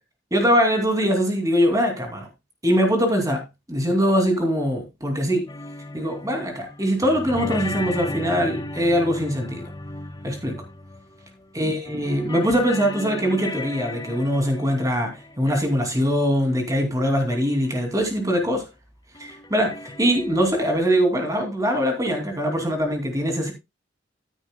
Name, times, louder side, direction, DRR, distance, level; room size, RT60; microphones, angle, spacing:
voice 1, 0.3-2.3 2.6-3.4 3.7-5.5 5.9-9.7 10.2-10.6 11.5-18.7 19.2-23.5, equal, 20° right, 2.5 m, -22 dB
sound 1, 5.5-11.5 11.8-15.9 17.3-17.4 17.6-17.7 19.1-20.7, left 2 dB, 20° left, 0.7 m, -36 dB
13.0 x 10.0 x 2.2 m
head